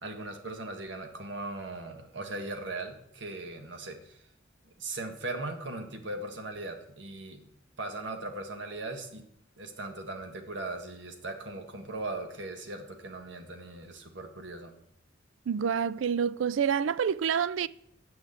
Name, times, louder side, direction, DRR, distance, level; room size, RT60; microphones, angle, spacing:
voice 1, 0.0-4.2 4.8-7.4 7.8-9.2 9.6-14.7, right 2 dB, 70° right, 1.7 m, -39 dB
voice 2, 15.5-17.7, right 7 dB, 85° right, 0.4 m, -27 dB
9.2 x 6.3 x 7.8 m
head